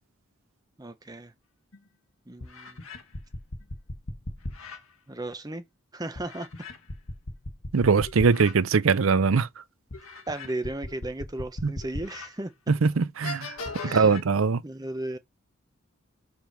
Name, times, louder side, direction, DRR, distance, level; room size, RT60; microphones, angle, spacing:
voice 1, 0.8-1.3 2.3-2.8 5.1-5.6 5.9-6.5 10.3-12.5 13.8-14.2 14.6-15.2, right 1 dB, 20° right, 0.9 m, -35 dB
sound 1, 1.7-1.8 2.4-4.8 6.2-8.5 9.0-9.1 9.9-12.3 12.8-12.9 13.2-14.2, left 2 dB, 85° left, 1.4 m, -37 dB
voice 2, 7.7-9.5 12.8-13.5 13.9-14.6, right 5 dB, 80° right, 0.6 m, -21 dB
5.3 x 4.6 x 5.8 m
head